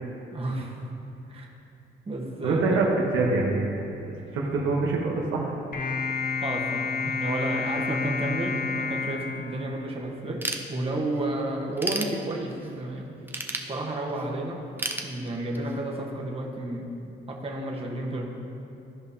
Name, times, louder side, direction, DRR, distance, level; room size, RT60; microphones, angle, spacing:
voice 1, 0.3-0.9 1.3-1.5 2.1-2.6 6.4-13.1 13.6-14.6 15.0-16.9 17.3-18.3, right 2 dB, 30° right, -1 dB, 1.2 m, -31 dB
voice 2, 2.4-2.9 3.1-3.7 4.0-5.5, right 3 dB, 90° right, -1 dB, 1.1 m, -25 dB
sound 1, 5.7-10.2, left 5 dB, 45° left, 1.0 m, -30 dB
Ratchet pawl / Tools, 10.4-11.2 11.6-12.7 13.3-14.3 14.8-15.8, right 2 dB, 10° right, 0.6 m, -32 dB
13.5 x 5.2 x 2.8 m, 2.8 s
cardioid pair, 90°, 20 cm